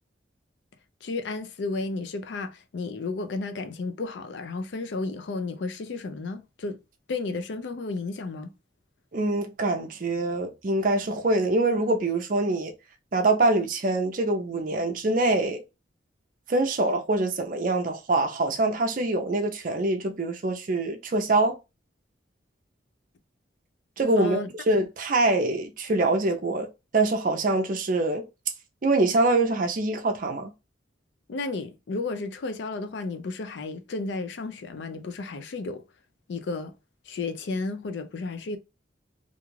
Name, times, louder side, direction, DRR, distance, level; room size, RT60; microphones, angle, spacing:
voice 1, 1.0-6.8 7.1-8.5 24.1-24.5 31.3-35.8 36.3-36.7 37.1-38.6, left 3 dB, 70° left, 0.4 m, -33 dB
voice 2, 9.1-12.7 13.1-15.6 16.5-21.6 24.0-26.7 26.9-28.2 28.8-30.5, right 2 dB, 45° right, 0.5 m, -24 dB
2.5 x 2.3 x 3.0 m
head